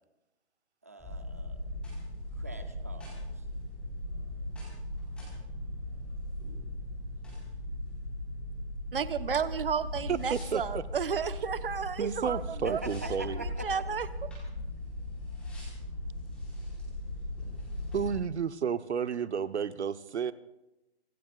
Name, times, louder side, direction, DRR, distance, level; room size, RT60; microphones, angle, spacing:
voice 1, 0.8-1.6 2.3-3.5 12.6-13.7, right 2 dB, 15° right, 7 dB, 0.6 m, -44 dB
sound 1, 1.0-18.2, left 1 dB, 5° left, 4.3 m, -38 dB
voice 2, 8.9-12.8 13.6-14.1, right 7 dB, 55° right, 12 dB, 1.1 m, -32 dB
voice 3, 10.1-10.8 12.0-13.4 17.9-20.3, right 7 dB, 80° right, 13 dB, 1.0 m, -32 dB
26.0 x 20.0 x 2.4 m, 0.95 s
hypercardioid pair, 175°, 33 cm